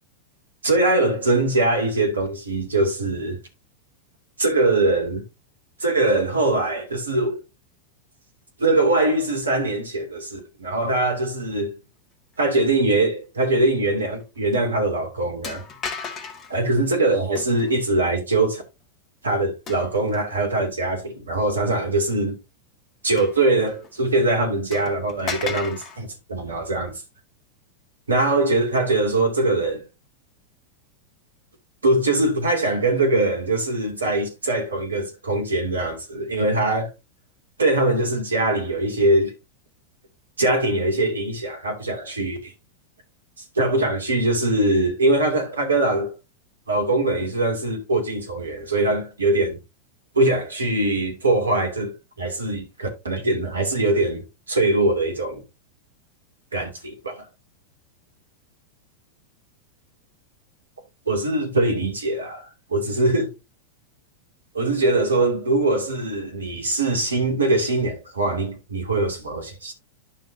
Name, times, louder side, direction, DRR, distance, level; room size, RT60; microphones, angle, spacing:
voice 1, 0.6-3.4 4.4-5.2 5.8-7.4 8.6-11.8 12.4-15.6 16.5-18.6 19.2-22.4 23.0-26.9 28.1-29.8 31.8-36.9 37.6-39.3 40.4-42.5 43.5-46.1 46.7-49.6 50.1-55.4 56.5-57.3 61.1-63.4 64.5-69.7, right 2 dB, 75° right, 2.5 m, -22 dB
sound 1, 14.0-14.2 14.5-14.6 15.4-16.6 17.3-17.8 19.7-20.4 21.0-21.1 23.2-23.9 24.2-24.3 24.7-26.0, left 5 dB, 30° left, 1.7 m, -35 dB
11.5 x 5.6 x 2.7 m
figure-of-eight pair, 90°, 0 cm